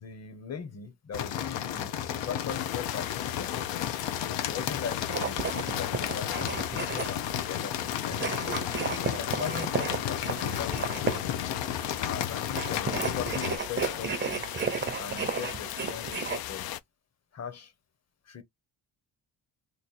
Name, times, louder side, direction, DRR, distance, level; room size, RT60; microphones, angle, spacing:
voice 1, 0.0-3.6 4.2-8.6 9.0-11.3 12.1-14.5 15.0-16.7 17.3-17.7 18.3-18.4, left 7 dB, 35° left, 1.0 m, -40 dB
sound 1, 1.1-13.6, left 10 dB, 80° left, 0.9 m, -33 dB
sound 2, 2.5-16.8, left 13 dB, 60° left, 0.5 m, -39 dB
sound 3, 5.0-7.4 8.1-11.4 12.5-16.4, right 5 dB, 25° right, 0.6 m, -33 dB
3.1 x 2.5 x 4.1 m
cardioid pair, 130°, 43 cm